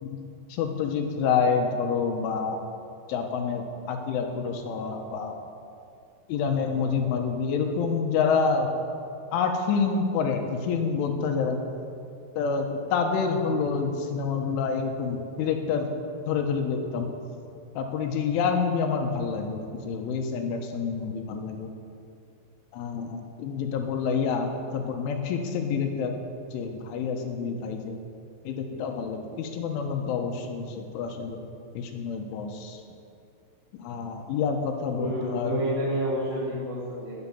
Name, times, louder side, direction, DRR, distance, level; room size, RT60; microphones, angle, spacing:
voice 1, 0.0-2.6 3.1-5.4 6.3-8.7 9.3-11.6 12.4-15.9 16.3-17.1 17.8-21.7 22.7-26.2 26.5-28.0 28.5-31.4 31.8-32.8 33.8-35.6, left 5 dB, 75° left, 4 dB, 3.7 m, -28 dB
voice 2, 34.9-37.1, right 1 dB, 15° right, -12 dB, 4.0 m, -29 dB
19.5 x 8.7 x 7.2 m, 2.5 s
omnidirectional pair, 5.7 m